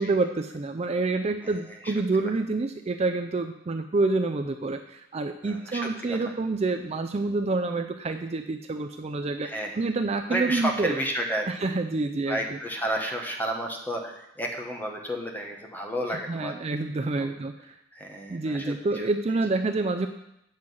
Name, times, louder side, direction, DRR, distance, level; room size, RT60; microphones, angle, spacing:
voice 1, 0.0-9.5 9.8-11.0 11.5-12.6 16.3-17.5 18.3-20.1, right 3 dB, 35° right, 7 dB, 0.4 m, -27 dB
voice 2, 1.4-1.9 2.2-2.3 5.4-6.3 9.4-9.9 10.3-11.5 12.3-16.8 17.2-17.3 17.9-19.1, equal, 10° left, 2 dB, 1.2 m, -32 dB
7.6 x 5.6 x 7.7 m, 0.82 s
head